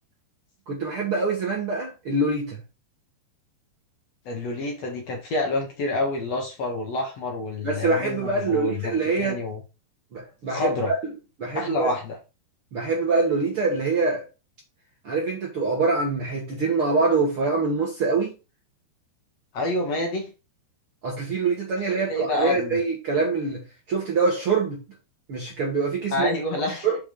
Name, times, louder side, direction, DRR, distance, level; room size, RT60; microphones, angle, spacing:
voice 1, 0.7-2.6 7.6-9.4 10.1-10.7 11.0-11.1 11.4-11.9 12.7-14.2 15.0-18.3 21.0-24.8 25.3-26.3 26.8-27.0, right 4 dB, 60° right, 1.5 m, -24 dB
voice 2, 4.3-9.6 10.5-10.9 11.5-12.2 19.5-20.3 22.1-22.8 26.1-26.9, left 2 dB, 60° left, 1.8 m, -28 dB
6.8 x 5.4 x 3.7 m
omnidirectional pair, 4.9 m